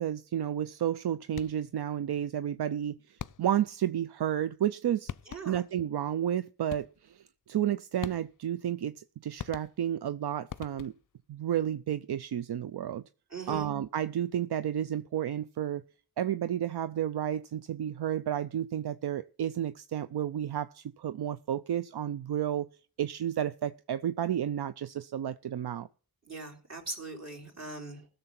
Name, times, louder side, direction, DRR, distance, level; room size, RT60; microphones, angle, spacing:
voice 1, 0.0-5.1 5.5-10.9 11.3-13.0 13.5-15.8 16.2-22.7 23.0-25.9, right 10 dB, 80° right, 0.5 m, -31 dB
sound 1, 1.3-1.8 3.2-3.7 4.7-4.8 5.1-5.7 6.7-7.2 8.0-8.6 9.4-10.1 10.5-11.2, left 9 dB, 55° left, 0.5 m, -43 dB
voice 2, 5.3-5.6 13.3-13.7 26.3-28.1, right 3 dB, 45° right, 3.6 m, -41 dB
16.0 x 6.8 x 5.8 m
wide cardioid pair, 75°, 39 cm